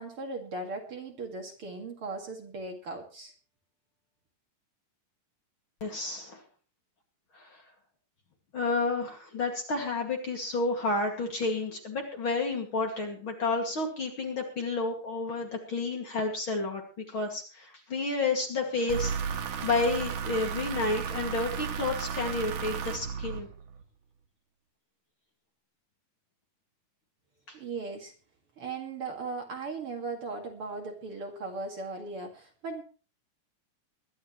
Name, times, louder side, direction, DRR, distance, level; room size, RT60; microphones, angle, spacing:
voice 1, 0.0-3.3 27.5-28.1 28.6-32.8, right 3 dB, 45° right, 2 dB, 2.8 m, -38 dB
voice 2, 5.8-6.4 7.3-7.6 8.5-16.8 17.1-23.5 27.5-27.6, left 3 dB, 40° left, 2 dB, 2.8 m, -31 dB
sound 1, 18.9-23.8, right 7 dB, 85° right, 3.1 m, -34 dB
22.5 x 11.5 x 3.1 m, 0.35 s
omnidirectional pair, 3.7 m